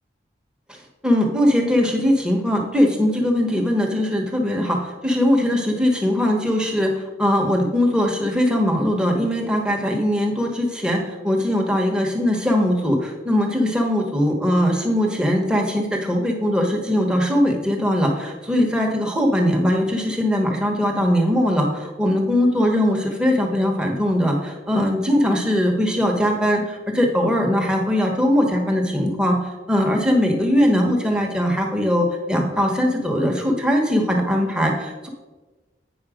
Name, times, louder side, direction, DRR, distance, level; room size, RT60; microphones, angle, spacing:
voice 1, 1.0-29.4 29.7-35.1, equal, 5° right, 1 dB, 1.2 m, -20 dB
8.9 x 5.7 x 5.0 m, 1.2 s
head